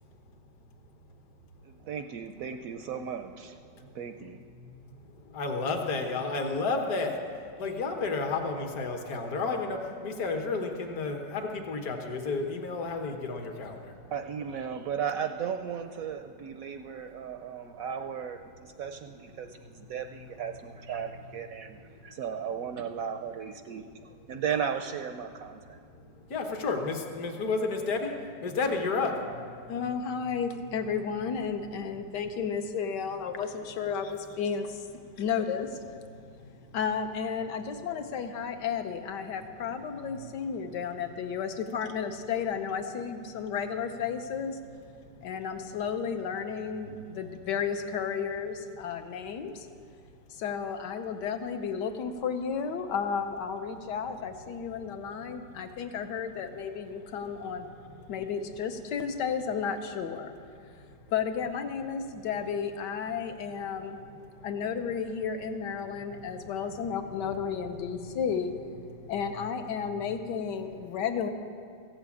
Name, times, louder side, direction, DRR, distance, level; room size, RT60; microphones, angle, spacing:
voice 1, 1.7-3.5 4.0-4.4 14.1-21.8 22.0-25.8, right 7 dB, 70° right, 7 dB, 0.8 m, -35 dB
voice 2, 4.6-14.1 16.3-16.5 17.1-17.4 17.7-17.8 18.7-22.8 23.7-24.4 25.3-29.9 30.3-30.8 31.5-31.6 31.8-32.4 35.0-35.2 36.1-36.8 39.2-40.8 41.3-41.4 43.3-43.5 44.6-45.6 46.7-47.2 50.0-50.4 54.7-56.0 56.7-58.1 60.5-61.1 62.2-62.3 63.4-64.6 65.8-68.2 68.9-69.5 69.8-69.9 70.7-70.8, left 3 dB, 55° left, 3 dB, 1.6 m, -36 dB
voice 3, 29.7-34.9 35.2-35.9 36.7-44.6 45.2-49.7 50.3-57.7 58.1-60.3 61.1-64.0 64.4-68.5 69.1-71.3, left 6 dB, 70° left, 7 dB, 1.5 m, -33 dB
15.5 x 7.5 x 8.3 m, 2.4 s
omnidirectional pair, 2.0 m